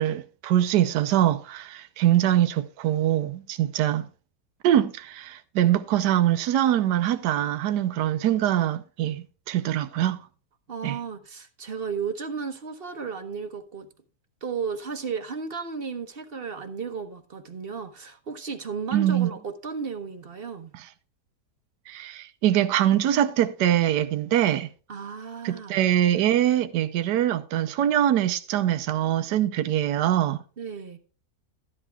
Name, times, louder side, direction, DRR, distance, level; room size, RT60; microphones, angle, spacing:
voice 1, 0.0-4.1 4.6-10.2 10.8-11.0 18.9-19.3 20.7-20.9 21.9-24.7 25.4-30.4, right 12 dB, 80° right, 1.3 m, -23 dB
voice 2, 10.7-13.9 14.4-20.7 24.9-25.8 30.6-31.0, right 5 dB, 40° right, 1.1 m, -34 dB
13.5 x 11.0 x 2.3 m
omnidirectional pair, 1.8 m